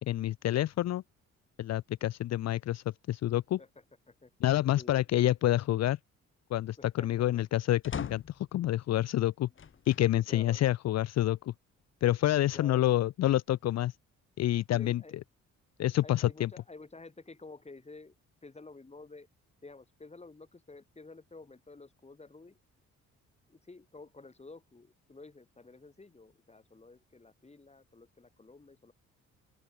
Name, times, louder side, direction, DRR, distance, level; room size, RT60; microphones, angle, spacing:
voice 1, 0.0-1.0 1.6-3.6 4.4-6.0 6.5-9.5 9.9-11.5 12.0-14.0 14.4-15.0 15.8-16.5, left 13 dB, 60° left, 0.6 m, -28 dB
voice 2, 3.6-4.3 4.7-5.0 6.8-7.5 9.4-9.6 10.3-10.6 12.5-12.9 14.7-15.2 16.0-18.1 18.4-19.3 19.6-22.6 23.5-28.9, left 3 dB, 20° left, 6.1 m, -51 dB
sound 1, 7.8-8.5 9.5-10.1 10.7-10.8 12.1-12.9, left 7 dB, 40° left, 1.6 m, -41 dB
open air
cardioid pair, 90°, 30 cm